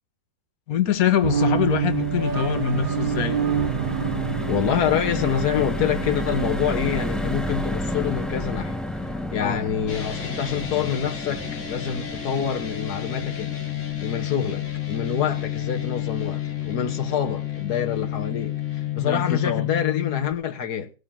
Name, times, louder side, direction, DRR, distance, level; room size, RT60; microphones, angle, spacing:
voice 1, 0.7-3.4 9.4-9.6 19.0-19.7, left 8 dB, 70° left, 1.7 m, -24 dB
sound 1, 0.9-17.2 17.6-17.7 18.0-18.2, left 1 dB, ahead, 0.4 m, -32 dB
sound 2, 1.2-8.6, right 7 dB, 40° right, 1.0 m, -28 dB
voice 2, 4.5-8.8 9.3-13.6 14.0-20.9, left 8 dB, 85° left, 1.7 m, -26 dB
sound 3, 9.9-20.3, left 12 dB, 50° left, 1.8 m, -30 dB
17.5 x 6.0 x 7.4 m
omnidirectional pair, 1.6 m